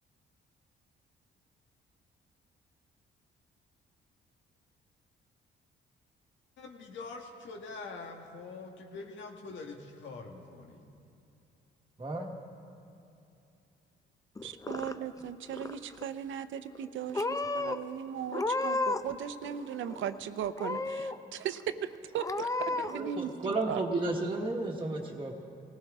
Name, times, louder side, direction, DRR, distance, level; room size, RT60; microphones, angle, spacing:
voice 1, 6.6-10.8, left 3 dB, 70° left, 1 dB, 1.5 m, -44 dB
voice 2, 12.0-12.3 22.9-25.3, right 2 dB, 25° right, -1 dB, 1.3 m, -33 dB
Purr / Meow, 14.4-15.2 15.5-16.1 16.7-16.9 17.1-17.8 18.3-19.1 19.4-20.2 20.6-21.2 21.6-21.7 22.2-22.9, left 3 dB, 15° left, 0.6 m, -33 dB
voice 3, 14.4-23.8, right 9 dB, 75° right, 12 dB, 0.7 m, -37 dB
19.5 x 16.0 x 3.6 m, 2.7 s
cardioid pair, 90°, 20 cm